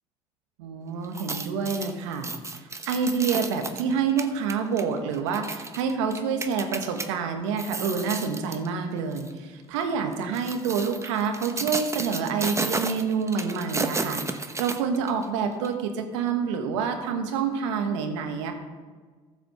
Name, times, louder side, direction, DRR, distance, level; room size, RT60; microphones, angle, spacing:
voice 1, 0.6-2.3 2.6-18.5, right 6 dB, 85° right, 4 dB, 1.4 m, -27 dB
sound 1, 1.0-7.1 7.5-8.7 9.1-9.3 10.1-15.3 15.6-15.7, right 3 dB, 20° right, 1.0 m, -33 dB
14.0 x 5.1 x 6.6 m, 1.4 s
hypercardioid pair, 65°, 15 cm